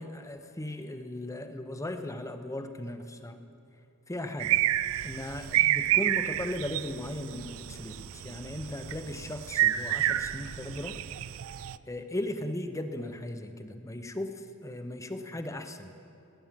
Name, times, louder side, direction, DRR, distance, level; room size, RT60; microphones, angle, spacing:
voice 1, 0.0-3.4 4.1-4.6 5.0-11.0 11.9-16.0, left 1 dB, 15° left, 7 dB, 0.8 m, -37 dB
sound 1, 4.4-11.8, right 13 dB, 65° right, 0.4 m, -29 dB
18.5 x 10.0 x 7.5 m, 2.7 s
head